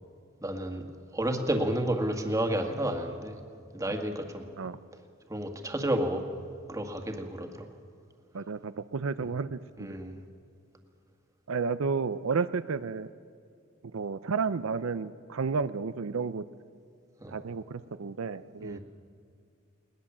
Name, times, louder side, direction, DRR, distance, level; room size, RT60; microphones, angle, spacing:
voice 1, 0.4-0.9 1.1-3.4 3.7-4.5 5.3-6.2 6.7-7.7 9.2-9.3 9.8-10.1 17.2-17.3 18.6-18.8, right 1 dB, 15° right, 4 dB, 1.8 m, -31 dB
voice 2, 8.3-9.9 11.5-13.1 13.9-16.4 17.3-18.8, right 5 dB, 75° right, 12 dB, 0.5 m, -32 dB
21.0 x 19.0 x 7.3 m, 2.3 s
head